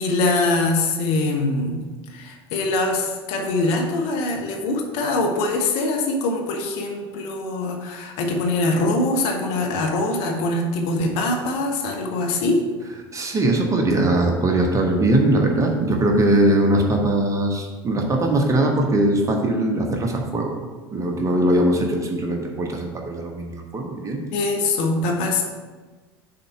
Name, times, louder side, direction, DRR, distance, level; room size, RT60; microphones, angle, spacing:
voice 1, 0.0-1.8 2.1-12.6 24.3-25.4, left 2 dB, 55° left, 1 dB, 1.1 m, -23 dB
voice 2, 13.1-24.2, right 1 dB, 25° right, 2 dB, 1.2 m, -21 dB
6.6 x 4.2 x 5.7 m, 1.3 s
figure-of-eight pair, 70°, 13 cm